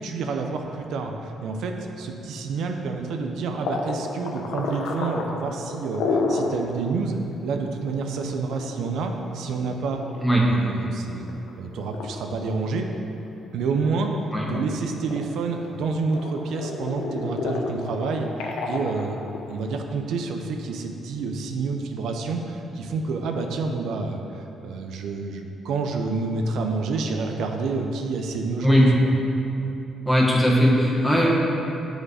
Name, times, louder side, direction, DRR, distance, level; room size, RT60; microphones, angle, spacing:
voice 1, 0.0-10.0 10.5-11.2 11.6-12.8 13.5-14.1 14.4-19.2 19.5-29.1, right 4 dB, 80° right, 4 dB, 0.5 m, -28 dB
sound 1, 3.6-6.6 7.0-7.1 7.4-7.5 8.3-10.6 11.1-11.5 11.9-12.1 12.6-13.6 13.9-15.7 16.1-19.6, left 3 dB, 85° left, 0.7 m, -30 dB
voice 2, 30.0-31.3, equal, 5° left, -4 dB, 1.4 m, -18 dB
6.3 x 5.0 x 4.8 m, 2.8 s
cardioid pair, 90°, 0 cm